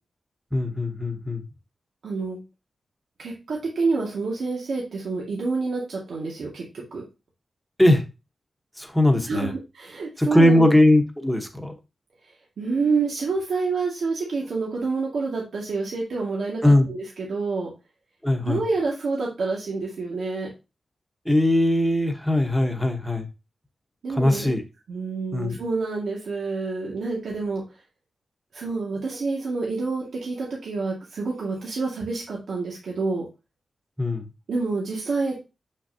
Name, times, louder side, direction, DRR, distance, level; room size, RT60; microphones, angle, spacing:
voice 1, 0.5-1.4 7.8-8.0 8.8-9.5 10.2-11.7 16.6-16.9 18.2-18.6 21.2-23.3 24.1-24.6 25.3-25.6 34.0-34.3, left 1 dB, ahead, 4 dB, 1.2 m, -20 dB
voice 2, 2.0-2.4 3.2-6.6 6.9-7.0 9.3-10.8 12.6-17.7 18.4-20.5 24.0-24.5 24.9-27.6 28.5-33.3 34.5-35.4, right 4 dB, 90° right, -3 dB, 2.0 m, -28 dB
7.4 x 6.3 x 2.8 m, 0.27 s
wide cardioid pair, 155°, 0 cm